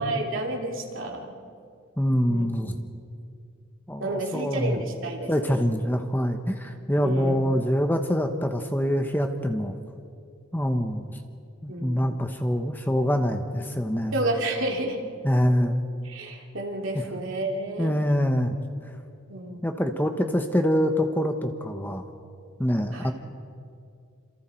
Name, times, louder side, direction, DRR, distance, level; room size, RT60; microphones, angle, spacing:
voice 1, 0.0-1.3 2.3-2.4 4.0-5.3 7.0-7.4 11.7-12.3 14.1-15.0 16.0-18.0 19.3-19.8 22.9-23.1, right 1 dB, 65° right, 0 dB, 3.0 m, -30 dB
voice 2, 2.0-2.8 3.9-4.8 5.3-9.8 10.5-11.2 11.6-14.1 15.2-15.8 16.9-17.0 17.8-18.6 19.6-22.0 22.6-23.1, equal, 10° left, 5 dB, 1.0 m, -25 dB
27.5 x 27.5 x 4.5 m, 2.4 s
head